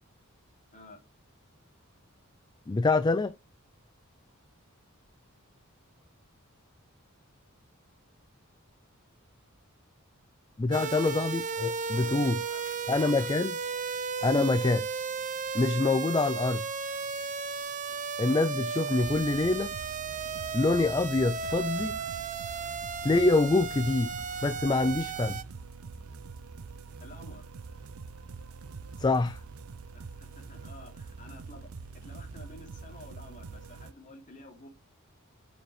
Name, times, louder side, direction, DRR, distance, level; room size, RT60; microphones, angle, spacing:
voice 1, 2.7-3.3 10.6-12.4 12.9-13.6 14.2-14.9 15.5-16.6 18.2-19.7 20.5-22.0 23.0-24.1 24.4-25.4 29.0-29.4, left 3 dB, 20° left, 0.4 m, -25 dB
voice 2, 10.7-11.0 11.9-12.6 13.0-13.3 17.9-18.0 27.0-27.5 29.9-34.7, left 2 dB, 35° left, 3.2 m, -50 dB
sound 1, 10.7-25.4, right 5 dB, 35° right, 0.8 m, -35 dB
sound 2, 19.0-33.9, right 4 dB, 80° right, 0.6 m, -45 dB
8.8 x 7.1 x 3.3 m
head